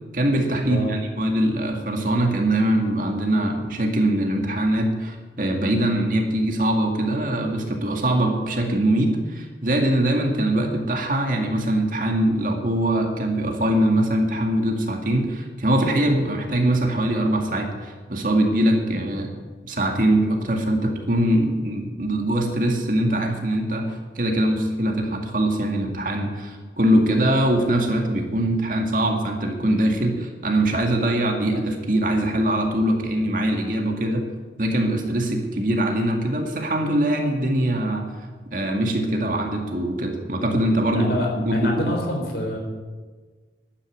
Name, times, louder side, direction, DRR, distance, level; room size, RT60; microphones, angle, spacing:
voice 1, 0.1-19.3 19.6-34.2 34.6-38.1 38.5-41.9, right 1 dB, 50° right, 2 dB, 2.1 m, -22 dB
voice 2, 0.7-1.0 40.9-42.6, left 1 dB, 65° left, 1 dB, 4.1 m, -26 dB
12.0 x 9.7 x 9.1 m, 1.4 s
head